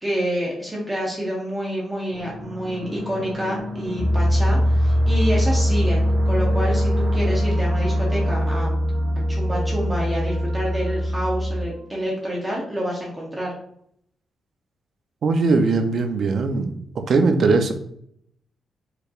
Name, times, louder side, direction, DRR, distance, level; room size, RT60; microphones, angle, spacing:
voice 1, 0.0-8.7 9.3-13.5, equal, 15° right, -3 dB, 0.9 m, -28 dB
sound 1, 2.1-11.9, equal, 80° right, 1.1 m, -33 dB
Piano, 4.0-11.7, equal, 15° left, 0.5 m, -21 dB
voice 2, 15.2-16.7 17.1-17.7, right 3 dB, 60° right, 6 dB, 0.6 m, -19 dB
4.8 x 3.3 x 2.4 m, 0.69 s
cardioid pair, 120°, 0 cm